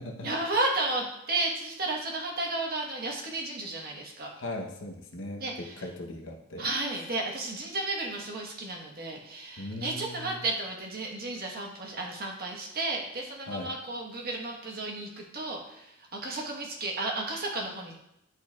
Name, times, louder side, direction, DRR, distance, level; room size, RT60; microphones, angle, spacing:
voice 1, 0.2-4.3 5.4-5.5 6.6-18.0, right 2 dB, 40° right, 0 dB, 1.3 m, -33 dB
voice 2, 4.4-6.7 6.9-7.1 9.6-10.4 13.5-13.7, left 1 dB, 55° left, 0 dB, 0.9 m, -39 dB
10.5 x 4.4 x 2.4 m, 0.82 s
head